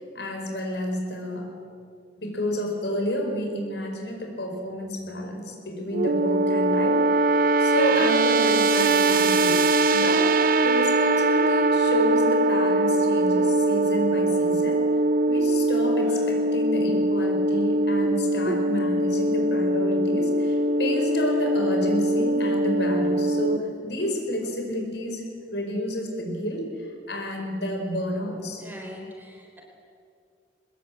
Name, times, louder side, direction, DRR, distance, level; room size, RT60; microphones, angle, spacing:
voice 1, 0.1-1.6 2.2-9.6 9.9-14.8 15.3-25.2 25.5-28.6, equal, 70° left, 3 dB, 4.8 m, -30 dB
sound 1, 5.9-23.6, right 2 dB, 50° right, 0.7 m, -22 dB
voice 2, 28.6-29.6, left 1 dB, 10° right, 1 dB, 4.0 m, -42 dB
23.0 x 20.5 x 8.5 m, 2.3 s
head